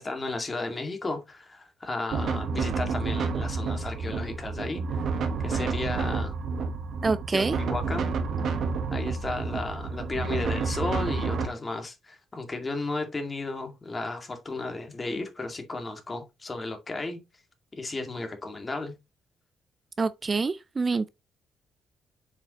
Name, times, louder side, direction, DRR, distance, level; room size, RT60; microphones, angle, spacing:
voice 1, 0.0-4.8 5.4-6.4 7.3-8.1 8.9-17.2 17.7-19.0, left 2 dB, 25° left, 2.1 m, -34 dB
sound 1, 2.1-11.5, right 4 dB, 65° right, 1.2 m, -29 dB
voice 2, 7.0-7.6 20.0-21.1, right 4 dB, 30° right, 0.4 m, -26 dB
7.2 x 5.1 x 3.0 m
cardioid pair, 90°, 0 cm